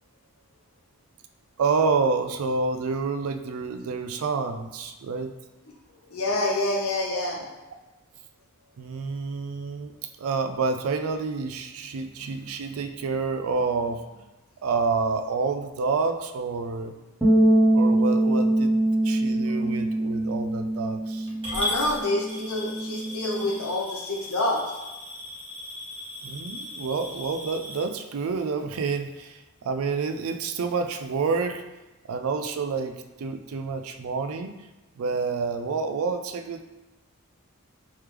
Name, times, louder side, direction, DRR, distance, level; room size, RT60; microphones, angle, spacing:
voice 1, 1.6-5.3 7.1-7.2 8.8-14.3 14.6-16.9 17.7-18.7 19.0-21.3 26.2-31.6 32.1-34.5 35.0-36.6, right 4 dB, 75° right, 7 dB, 0.4 m, -28 dB
voice 2, 6.1-7.4 19.4-19.5 21.5-24.6, left 2 dB, 85° left, -1 dB, 0.9 m, -27 dB
sound 1, 17.2-23.5, right 1 dB, 5° right, 0.6 m, -23 dB
Coin (dropping) / Glass, 21.4-27.8, left 1 dB, 25° right, 1.3 m, -36 dB
3.3 x 3.1 x 3.4 m, 1.1 s
head